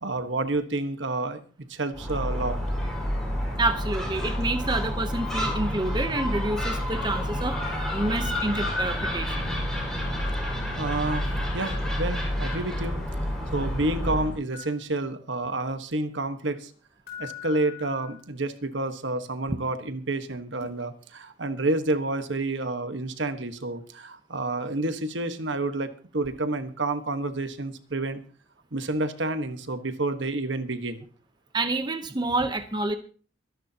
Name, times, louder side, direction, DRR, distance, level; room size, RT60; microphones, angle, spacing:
voice 1, 0.0-1.4 1.7-2.6 10.8-13.0 13.2-16.7 17.2-25.9 26.1-28.2 28.7-31.0, right 2 dB, 75° right, 9 dB, 1.4 m, -29 dB
Gull seagull, 1.9-14.4, equal, 5° left, 5.3 m, -29 dB
voice 2, 3.6-9.5 31.5-33.0, right 2 dB, 25° right, 8 dB, 0.8 m, -28 dB
sound 1, 14.5-14.8 17.1-18.2 20.6-20.7, left 11 dB, 55° left, 5.2 m, -41 dB
24.0 x 11.0 x 2.9 m, 0.40 s
head